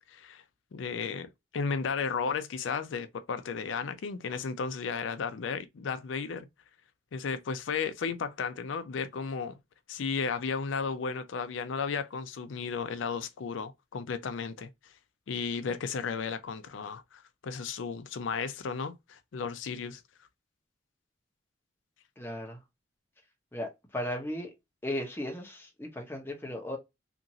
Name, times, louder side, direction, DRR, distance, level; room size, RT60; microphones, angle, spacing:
voice 1, 0.1-0.4 0.7-6.5 7.1-9.5 9.9-14.9 15.3-20.0, left 5 dB, 85° left, 0.4 m, -34 dB
voice 2, 22.2-22.6 23.5-24.5 24.8-26.8, left 1 dB, 10° left, 0.8 m, -36 dB
2.9 x 2.5 x 2.6 m
head